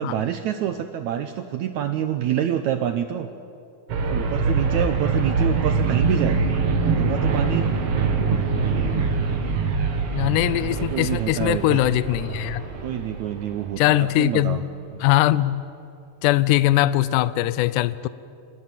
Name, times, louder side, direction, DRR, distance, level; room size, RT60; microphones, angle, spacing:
voice 1, 0.0-3.3 4.1-6.4 6.8-7.7 10.7-11.8 12.8-14.6 14.9-15.1, right 10 dB, 75° right, 9 dB, 1.8 m, -27 dB
sound 1, 3.9-13.8, right 4 dB, 50° right, 2.2 m, -24 dB
sound 2, 7.2-13.7, right 1 dB, 15° right, 3.5 m, -40 dB
voice 2, 10.1-12.6 13.8-14.7 15.0-15.6 16.2-18.1, left 15 dB, 80° left, 17 dB, 1.9 m, -21 dB
26.0 x 21.0 x 7.5 m, 2.6 s
omnidirectional pair, 4.1 m